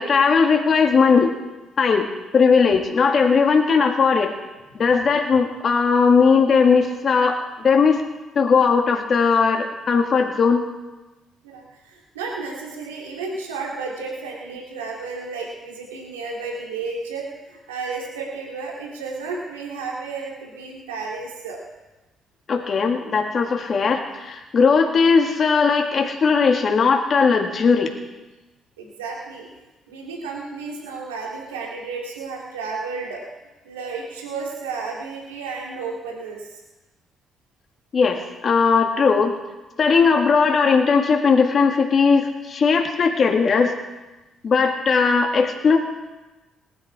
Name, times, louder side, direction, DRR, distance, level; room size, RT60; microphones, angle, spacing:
voice 1, 0.0-1.3 1.8-2.1 2.3-4.3 4.8-7.4 7.6-8.0 8.4-10.6 22.5-27.9 37.9-39.3 39.8-43.7 44.4-45.8, left 5 dB, 50° left, 3 dB, 1.8 m, -18 dB
voice 2, 11.4-21.6 28.8-29.5 29.9-33.2 33.6-36.6, right 4 dB, 90° right, -2 dB, 2.3 m, -32 dB
19.0 x 11.0 x 4.8 m, 1.1 s
hypercardioid pair, 50°, 0 cm